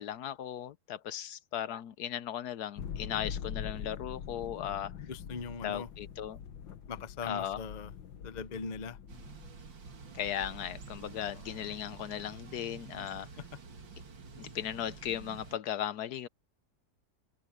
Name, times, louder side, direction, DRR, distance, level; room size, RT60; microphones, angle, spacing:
voice 1, 0.0-4.9 5.6-6.4 7.2-7.6 10.1-13.3 14.4-16.3, left 10 dB, 65° left, 1.1 m, -37 dB
sound 1, 2.8-9.5, left 8 dB, 90° left, 1.9 m, -43 dB
voice 2, 5.0-5.9 6.9-7.9 8.2-9.0 11.3-11.7, left 5 dB, 50° left, 0.5 m, -40 dB
Thunder / Bicycle, 9.1-15.6, right 4 dB, 85° right, 2.9 m, -48 dB
omnidirectional pair, 2.0 m